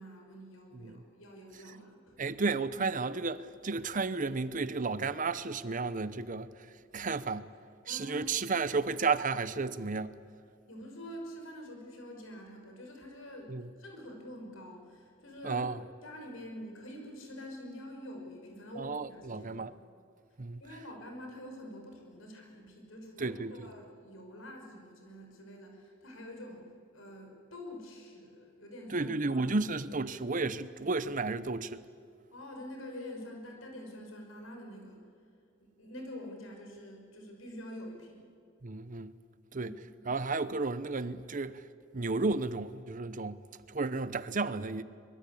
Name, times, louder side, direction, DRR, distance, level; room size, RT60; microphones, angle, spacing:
voice 1, 0.0-2.3 7.9-8.6 10.7-15.6 16.0-19.6 20.6-29.5 32.3-35.0 35.6-38.3 39.6-39.8, left 1 dB, 80° left, 5.9 m, -46 dB
voice 2, 2.2-6.7 6.9-7.5 7.9-10.1 13.5-13.7 15.4-15.8 18.8-19.7 20.4-20.6 23.2-23.7 28.9-31.8 38.6-39.1 39.5-39.8 40.0-41.6 41.9-43.4 43.7-44.8, right 3 dB, 40° right, 0.8 m, -33 dB
24.0 x 22.0 x 8.5 m
head